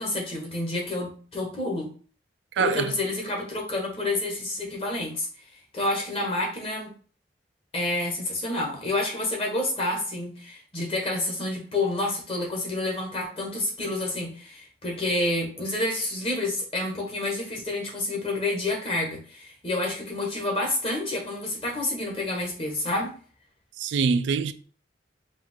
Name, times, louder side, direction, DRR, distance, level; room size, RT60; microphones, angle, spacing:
voice 1, 0.0-1.9 2.6-5.3 5.7-6.9 7.7-23.1, left 2 dB, 30° left, 1.2 m, -29 dB
voice 2, 2.6-2.9 23.8-24.5, right 5 dB, 85° right, 0.3 m, -24 dB
4.9 x 2.6 x 3.6 m
head